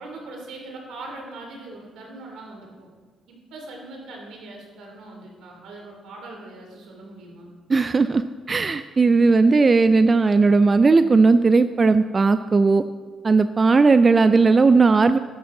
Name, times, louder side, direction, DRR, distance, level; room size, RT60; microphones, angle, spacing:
voice 1, 0.0-2.9 3.3-7.5, right 2 dB, 80° right, 0 dB, 3.1 m, -40 dB
voice 2, 7.7-8.2 8.5-12.8 13.2-15.2, right 4 dB, 30° right, 11 dB, 0.4 m, -17 dB
12.0 x 11.0 x 3.8 m, 1.5 s
cardioid pair, 90°, 0 cm